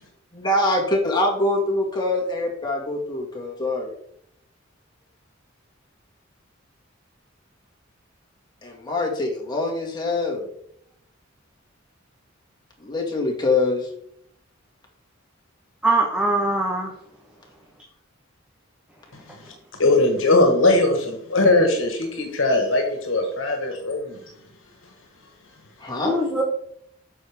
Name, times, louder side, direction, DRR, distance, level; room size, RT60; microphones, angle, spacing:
voice 1, 0.3-3.9 8.6-10.5 12.8-13.9 22.5-22.6 25.8-26.2, left 2 dB, 20° left, -1 dB, 2.1 m, -24 dB
voice 2, 15.8-16.9 26.0-26.4, right 2 dB, 5° right, -2 dB, 1.1 m, -21 dB
voice 3, 19.8-24.2, left 2 dB, 70° left, 3 dB, 1.5 m, -20 dB
8.8 x 6.5 x 3.5 m, 0.70 s
head